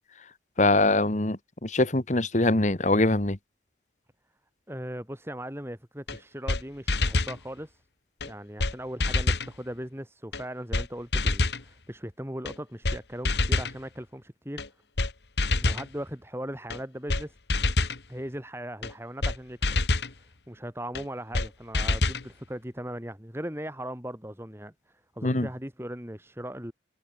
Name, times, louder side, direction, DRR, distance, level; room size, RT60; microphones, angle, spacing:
voice 1, 0.6-3.4 25.2-25.5, left 2 dB, 40° left, 1.5 m, -23 dB
voice 2, 4.7-7.8 8.2-14.6 15.6-17.3 18.1-19.7 20.0-20.1 20.5-26.7, equal, 15° right, 6.2 m, -38 dB
sound 1, 6.1-6.2 6.5-6.6 6.9-7.4 8.2-8.3 8.6-8.7 9.0-9.5 10.3-10.4 10.7-10.9 11.1-11.6 12.4-12.5 12.8-13.0 13.2-13.7 14.6-14.7 15.0-15.1 15.4-15.9 16.7-16.8 17.1-17.2 17.5-18.0 18.8-18.9 19.2-19.4 19.6-20.1 20.9-21.0 21.3-21.5 21.7-22.2, left 2 dB, 75° left, 1.8 m, -26 dB
head